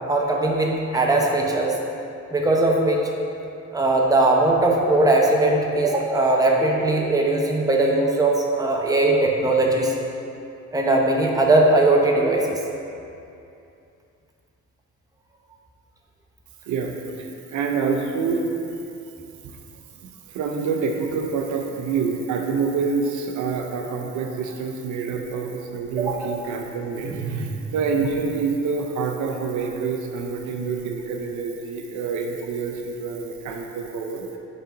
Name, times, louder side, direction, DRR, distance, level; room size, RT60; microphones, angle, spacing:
voice 1, 0.1-1.7 2.3-3.1 3.7-9.9 10.7-12.6 26.0-26.3, right 2 dB, 10° right, -1 dB, 0.8 m, -19 dB
voice 2, 17.5-18.4 20.3-34.3, right 5 dB, 80° right, 2 dB, 0.7 m, -26 dB
5.5 x 3.9 x 4.9 m, 2.6 s
cardioid pair, 90°, 30 cm